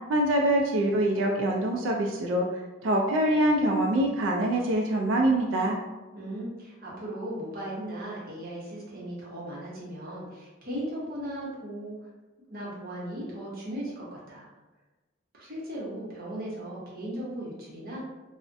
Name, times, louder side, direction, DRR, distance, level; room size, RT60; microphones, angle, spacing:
voice 1, 0.1-2.5 2.8-5.8, right 1 dB, 85° right, 0 dB, 0.3 m, -24 dB
voice 2, 6.1-12.0 12.5-14.5 15.3-18.0, right 1 dB, 50° right, -6 dB, 0.8 m, -37 dB
2.4 x 2.1 x 2.5 m, 1.1 s
head